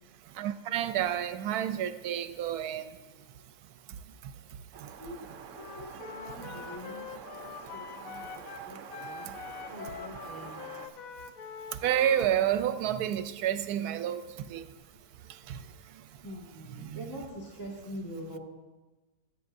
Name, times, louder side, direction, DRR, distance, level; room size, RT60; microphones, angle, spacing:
voice 1, 0.4-2.9 6.4-6.6 11.8-14.6 15.5-15.6 16.8-17.0, right 10 dB, 85° right, 1.1 m, -30 dB
sound 1, 4.7-10.9, right 6 dB, 60° right, 1.0 m, -47 dB
voice 2, 5.0-5.3 5.6-7.1 7.4-9.3 9.7-10.7 16.2-18.4, equal, 15° left, 1.7 m, -44 dB
Wind instrument woodwind instrument, 5.5-12.3, left 6 dB, 70° left, 1.1 m, -44 dB
20.5 x 8.3 x 2.6 m
omnidirectional pair, 1.6 m